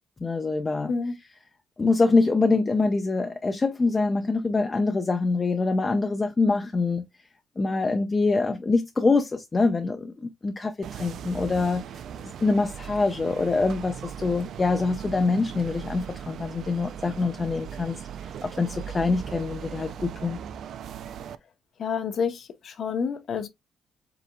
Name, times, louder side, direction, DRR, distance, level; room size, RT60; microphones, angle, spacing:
voice 1, 0.2-0.9 1.8-7.1 7.6-11.8 12.4-18.0 18.4-20.4, left 3 dB, 25° left, 0.6 m, -24 dB
voice 2, 0.9-1.2 21.8-23.5, left 6 dB, 60° left, 0.8 m, -29 dB
sound 1, 10.8-21.4, right 8 dB, 70° right, 0.4 m, -38 dB
5.0 x 3.6 x 2.2 m
cardioid pair, 90°, 0 cm